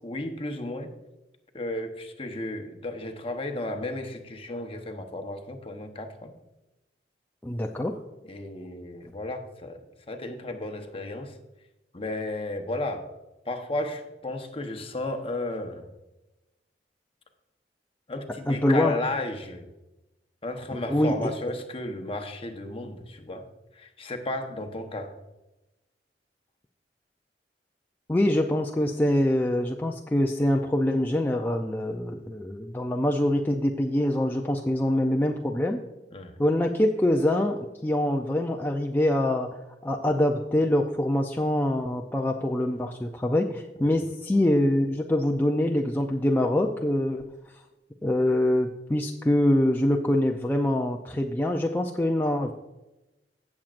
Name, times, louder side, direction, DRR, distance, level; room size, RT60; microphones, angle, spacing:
voice 1, 0.0-0.9 1.5-6.3 8.3-11.4 11.9-13.0 13.4-15.9 18.1-19.7 20.4-23.5 23.7-25.1 36.1-36.4 43.8-44.0, left 2 dB, 35° left, 5 dB, 0.9 m, -34 dB
voice 2, 7.4-8.0 18.5-19.0 20.9-21.3 28.1-35.8 36.4-39.5 39.8-47.2 48.0-52.5, left 1 dB, 10° left, 1 dB, 0.4 m, -24 dB
16.0 x 7.3 x 2.5 m, 1.0 s
head